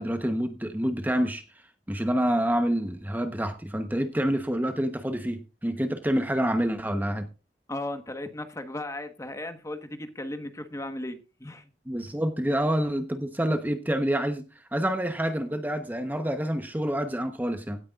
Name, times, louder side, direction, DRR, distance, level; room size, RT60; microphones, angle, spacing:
voice 1, 0.0-1.4 1.9-7.3 11.9-14.4 14.7-17.8, equal, 10° right, 7 dB, 0.9 m, -27 dB
voice 2, 7.7-11.6, left 1 dB, 15° left, 8 dB, 1.3 m, -36 dB
17.0 x 9.6 x 2.4 m, 0.32 s
head